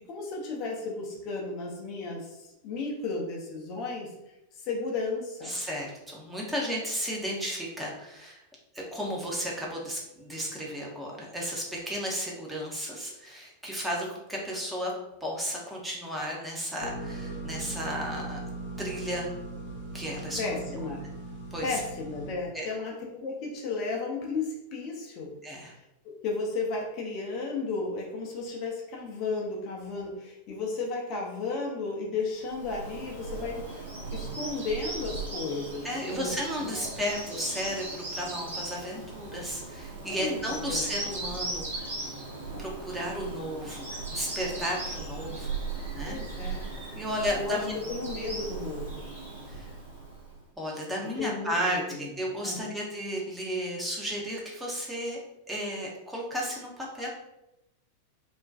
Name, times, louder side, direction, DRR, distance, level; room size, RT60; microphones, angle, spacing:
voice 1, 0.1-4.1 4.5-5.6 20.4-21.0 21.6-25.3 25.7-36.7 40.2-40.9 46.0-46.7 47.4-47.6 47.9-49.1 51.2-52.1 52.4-52.7, left 3 dB, 40° left, -1 dB, 0.5 m, -34 dB
voice 2, 5.4-8.4 8.7-14.9 15.2-18.4 18.8-19.3 19.9-20.4 20.7-20.8 21.5-21.8 22.5-22.7 25.4-25.7 35.8-41.9 42.6-45.6 45.9-46.5 47.0-47.7 49.5-49.7 50.6-55.2 55.5-57.1, equal, 5° right, -3 dB, 0.6 m, -33 dB
sound 1, 16.8-22.3, right 2 dB, 65° left, 0.8 m, -39 dB
Bird vocalization bird call bird song, 32.4-50.4, right 3 dB, 75° right, 0.8 m, -38 dB
2.4 x 2.2 x 2.3 m, 0.90 s
figure-of-eight pair, 90°, 0 cm